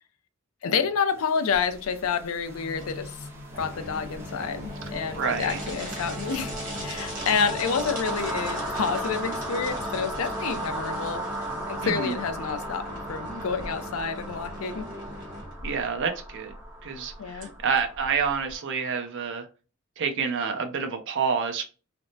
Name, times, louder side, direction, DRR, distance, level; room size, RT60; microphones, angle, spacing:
voice 1, 0.6-3.1 3.6-11.3 11.7-14.9 17.2-17.5, left 6 dB, 70° left, 0.5 m, -29 dB
sound 1, 1.2-19.0, right 1 dB, 10° right, 0.5 m, -37 dB
sound 2, 1.5-18.5, right 1 dB, 40° right, 1.2 m, -39 dB
sound 3, 2.5-15.9 16.4-16.5 16.9-17.0, left 1 dB, 85° right, 1.4 m, -47 dB
voice 2, 5.2-5.6 11.8-12.2 15.6-16.5 16.8-19.5 20.0-21.6, right 6 dB, 60° right, 0.6 m, -28 dB
3.3 x 2.0 x 2.6 m
head